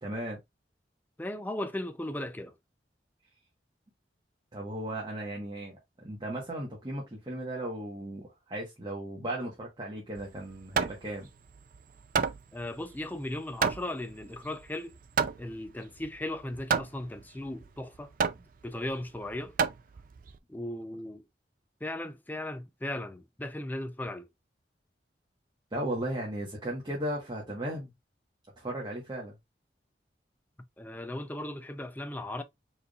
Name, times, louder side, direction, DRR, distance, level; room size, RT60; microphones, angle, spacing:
voice 1, 0.0-0.4 4.5-5.8 6.0-11.3 25.7-27.9 28.6-29.3, right 1 dB, 25° right, 1.1 m, -36 dB
voice 2, 1.2-2.5 12.5-15.0 15.4-18.1 18.6-19.6 20.5-21.2 21.8-24.3 30.8-32.4, left 1 dB, 10° left, 0.4 m, -37 dB
Hammer, 10.2-20.4, right 6 dB, 50° right, 0.4 m, -32 dB
4.6 x 3.2 x 2.3 m
head